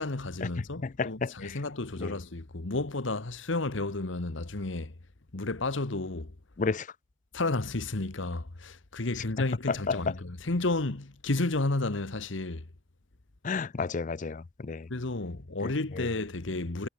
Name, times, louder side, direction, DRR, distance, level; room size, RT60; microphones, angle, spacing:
voice 1, 0.0-4.9 5.3-6.3 7.3-12.7 14.9-16.9, left 2 dB, 70° left, 1.3 m, -32 dB
voice 2, 0.8-1.6 2.0-2.1 6.6-6.9 9.7-10.0 13.4-14.9 15.6-16.1, left 4 dB, 40° left, 0.5 m, -32 dB
head